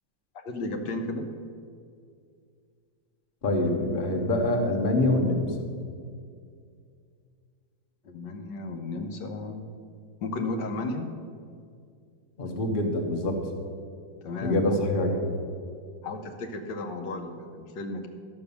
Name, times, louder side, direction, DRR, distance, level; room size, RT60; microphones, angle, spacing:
voice 1, 0.4-1.3 8.0-9.6 10.2-11.1 14.2-14.8 16.0-18.1, left 2 dB, 70° left, 4 dB, 1.4 m, -34 dB
voice 2, 3.4-5.5 12.4-13.4 14.4-15.2, left 1 dB, 35° left, 2 dB, 1.1 m, -25 dB
12.0 x 6.0 x 6.9 m, 2.3 s
omnidirectional pair, 2.0 m